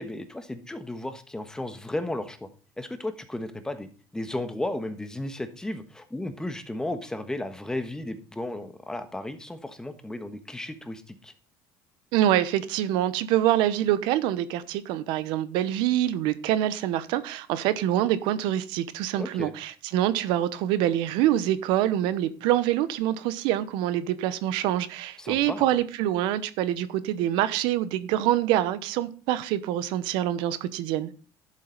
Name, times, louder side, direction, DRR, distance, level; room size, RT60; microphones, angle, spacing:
voice 1, 0.0-2.5 2.8-11.3 19.2-19.5 25.2-25.6, left 1 dB, 10° left, 1.2 m, -34 dB
voice 2, 12.1-31.1, right 12 dB, 80° right, 0.9 m, -25 dB
11.5 x 7.5 x 4.0 m
cardioid pair, 125°, 8 cm